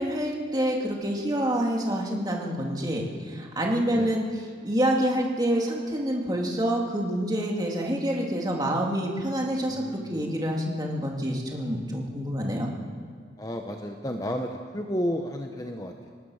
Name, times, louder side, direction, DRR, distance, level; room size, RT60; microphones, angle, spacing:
voice 1, 0.0-9.8 10.1-12.7, equal, 20° right, -1 dB, 2.8 m, -27 dB
voice 2, 2.9-3.3 3.9-4.1 9.7-10.3 13.4-16.1, equal, 20° left, 4 dB, 1.0 m, -32 dB
26.0 x 18.5 x 6.5 m, 2.1 s
head